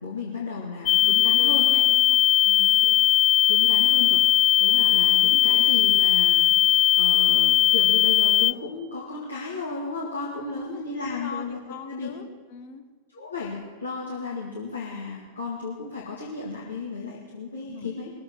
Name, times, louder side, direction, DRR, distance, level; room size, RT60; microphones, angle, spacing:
voice 1, 0.0-1.6 2.8-2.9 3.5-11.6 11.9-12.1 13.1-18.1, left 4 dB, 80° left, -5 dB, 2.0 m, -34 dB
sound 1, 0.9-8.5, left 12 dB, 30° left, 0.3 m, -19 dB
voice 2, 1.0-2.8 10.4-12.8 17.6-17.9, left 6 dB, 50° left, 7 dB, 1.3 m, -41 dB
21.0 x 7.7 x 6.1 m, 1.4 s
figure-of-eight pair, 90°, 0 cm